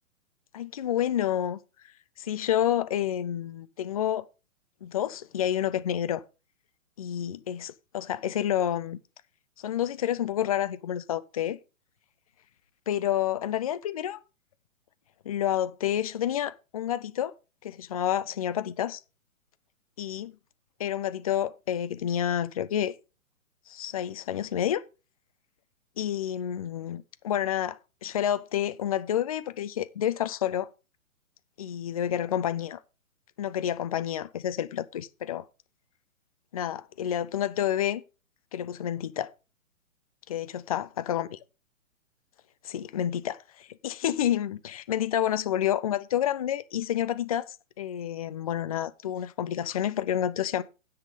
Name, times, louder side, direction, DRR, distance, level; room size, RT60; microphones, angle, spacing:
voice 1, 0.5-1.6 2.2-4.3 4.8-6.2 7.0-9.0 9.6-11.6 12.9-14.2 15.3-17.3 17.6-19.0 20.0-20.4 20.8-22.9 23.7-24.8 26.0-30.7 31.6-32.8 33.4-35.4 36.5-38.0 38.5-39.3 40.3-41.3 42.6-47.5 47.8-50.6, left 10 dB, 25° left, 0.5 m, -29 dB
9.7 x 7.7 x 5.1 m
figure-of-eight pair, 125°, 41 cm